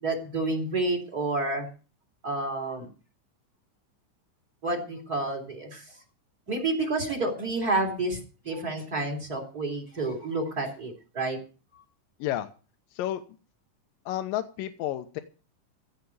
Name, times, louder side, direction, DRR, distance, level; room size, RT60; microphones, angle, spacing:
voice 1, 0.0-1.7 2.2-2.9 4.6-5.8 6.5-11.4, right 2 dB, 25° right, 5 dB, 3.9 m, -29 dB
voice 2, 14.1-15.2, left 13 dB, 85° left, 8 dB, 2.6 m, -31 dB
16.0 x 5.9 x 9.5 m, 0.36 s
omnidirectional pair, 3.9 m